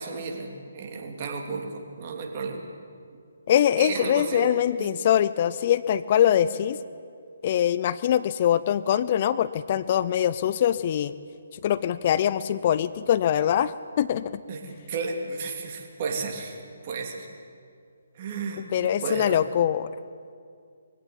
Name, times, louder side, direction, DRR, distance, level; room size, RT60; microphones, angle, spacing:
voice 1, 0.0-2.7 3.8-4.5 4.8-4.9 6.3-6.4 14.5-17.3 18.1-19.4, right 4 dB, 40° right, 2 dB, 3.2 m, -33 dB
voice 2, 3.5-6.8 7.4-11.1 11.6-14.2 18.7-19.9, left 10 dB, 40° left, 16 dB, 0.6 m, -23 dB
22.0 x 16.5 x 9.2 m, 2.3 s
figure-of-eight pair, 145°, 0 cm